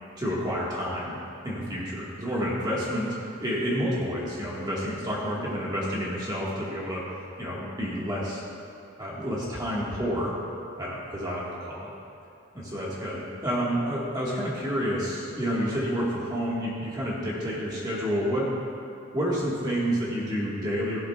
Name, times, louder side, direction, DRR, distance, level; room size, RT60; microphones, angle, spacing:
voice 1, 0.2-1.2 1.4-3.1 3.4-7.0 7.4-8.4 9.0-10.3 10.8-11.9 12.5-18.5 19.1-21.0, equal, 20° right, -6 dB, 1.6 m, -29 dB
15.5 x 11.5 x 2.4 m, 2.6 s
head